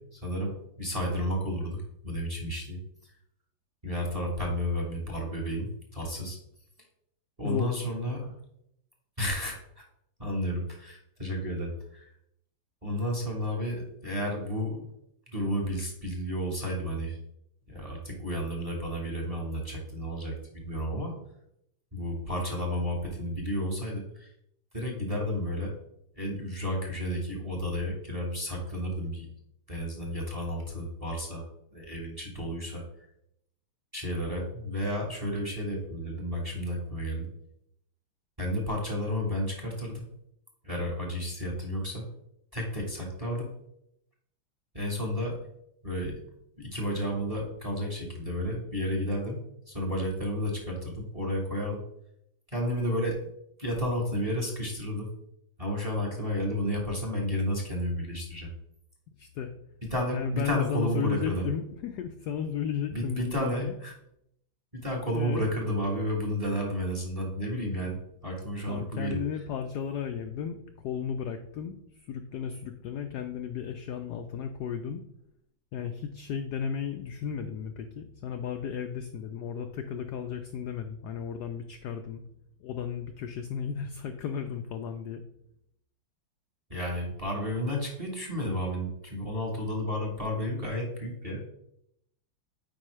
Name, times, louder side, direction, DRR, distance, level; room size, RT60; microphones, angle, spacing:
voice 1, 0.0-2.8 3.8-6.4 7.4-8.3 9.2-9.8 10.2-12.1 12.8-14.9 15.3-17.2 17.7-21.1 21.9-24.3 24.7-25.7 26.2-29.3 29.7-31.4 31.7-32.8 33.9-37.3 38.4-40.0 40.6-42.0 42.5-43.5 44.7-45.4 45.8-46.2 46.6-51.8 52.5-53.2 53.6-55.1 55.6-58.5 59.9-61.4 62.9-63.9 64.7-69.2 86.7-91.5, equal, 20° right, 0 dB, 1.1 m, -32 dB
voice 2, 59.2-59.5 60.1-63.7 65.1-65.5 68.7-70.6 70.8-75.0 75.7-82.2 82.6-85.2, left 7 dB, 75° left, 6 dB, 0.9 m, -34 dB
9.0 x 4.6 x 3.2 m, 0.77 s
omnidirectional pair, 2.2 m